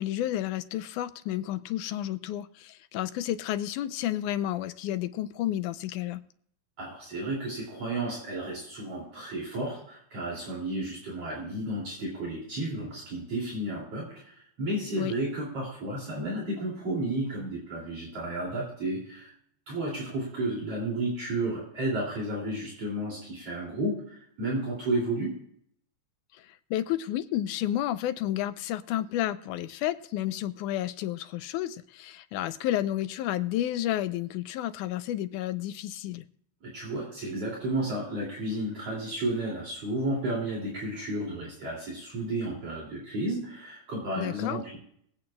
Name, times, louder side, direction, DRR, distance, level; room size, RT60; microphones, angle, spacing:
voice 1, 0.0-6.2 15.0-15.1 26.4-36.3 44.2-44.6, left 13 dB, 85° left, 2.1 m, -31 dB
voice 2, 6.8-19.3 19.7-25.4 36.6-44.8, right 1 dB, 55° right, 3.8 m, -32 dB
24.0 x 8.6 x 2.3 m
omnidirectional pair, 3.5 m